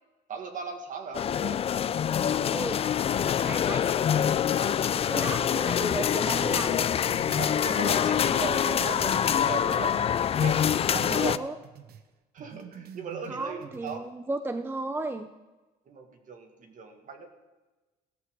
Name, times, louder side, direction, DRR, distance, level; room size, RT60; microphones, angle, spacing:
voice 1, 0.3-1.6 4.5-4.8 5.1-5.2 7.4-10.6 10.9-11.4 12.3-14.1 15.9-17.3, right 5 dB, 50° right, 5 dB, 2.1 m, -38 dB
sound 1, 1.1-11.4, left 9 dB, 35° left, 0.4 m, -25 dB
voice 2, 2.5-2.8 3.4-3.8 5.1-6.9 11.1-11.6 13.3-15.3, right 2 dB, 15° right, 8 dB, 0.6 m, -34 dB
sound 2, 6.4-10.1 10.4-12.0 12.4-14.0, right 9 dB, 70° right, 0.9 m, -47 dB
16.5 x 13.0 x 3.8 m, 1.2 s
cardioid pair, 110°, 17 cm